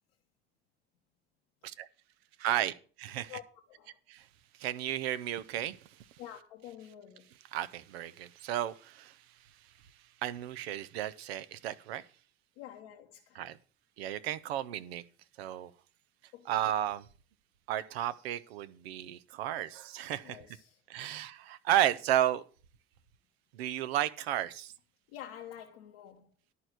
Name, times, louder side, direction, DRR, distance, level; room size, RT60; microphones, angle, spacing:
voice 1, 2.4-3.4 4.1-4.2 4.6-5.8 7.5-9.1 10.2-12.0 13.4-13.6 14.0-15.0 15.4-15.7 16.5-17.0 17.7-20.4 20.9-22.4 23.5-24.7, right 12 dB, 85° right, 0.7 m, -33 dB
voice 2, 6.2-7.3 12.6-13.4 16.3-16.6 20.2-20.8 25.1-26.3, left 11 dB, 85° left, 1.1 m, -48 dB
11.0 x 4.7 x 7.9 m
hypercardioid pair, 60°, 30 cm